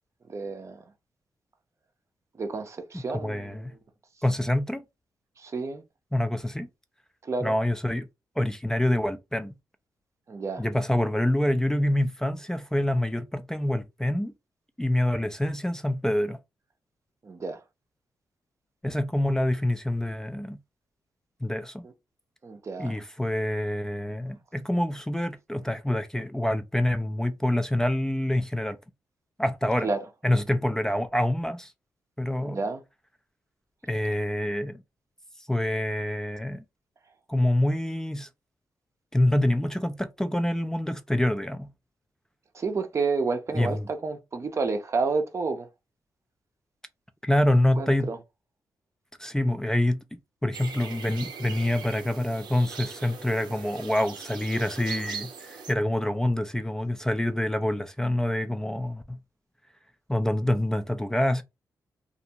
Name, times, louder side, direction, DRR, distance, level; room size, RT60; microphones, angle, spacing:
voice 1, 0.3-0.8 2.4-3.7 5.4-5.8 7.2-7.5 10.3-10.7 17.2-17.6 22.4-23.0 29.8-30.0 32.4-32.8 42.5-45.7 47.8-48.2, right 4 dB, 40° right, 0.6 m, -30 dB
voice 2, 2.9-3.7 4.2-4.8 6.1-6.7 7.4-8.1 8.4-9.5 10.6-14.3 14.8-16.4 18.8-20.6 21.4-21.9 22.8-28.8 29.4-29.9 30.2-31.7 32.2-32.6 33.8-34.8 35.4-36.6 37.3-38.3 39.1-41.7 43.6-43.9 47.2-48.1 49.2-59.2 60.1-61.4, left 1 dB, 5° left, 0.4 m, -26 dB
sound 1, 50.5-55.7, right 6 dB, 90° right, 0.6 m, -40 dB
2.5 x 2.2 x 2.7 m
cardioid pair, 65°, 7 cm